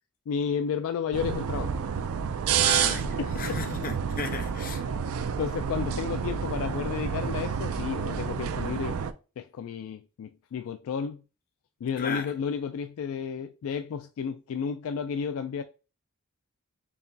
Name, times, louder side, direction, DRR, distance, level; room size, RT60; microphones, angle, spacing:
voice 1, 0.3-1.8 2.5-2.7 3.2-3.6 4.8-5.0 5.4-9.0 9.4-11.2 11.8-15.6, left 7 dB, 65° left, 0.3 m, -32 dB
sound 1, 1.1-9.1, right 7 dB, 70° right, 0.4 m, -29 dB
voice 2, 2.6-4.8 12.0-12.3, left 4 dB, 40° left, 0.7 m, -35 dB
4.6 x 3.0 x 2.6 m
head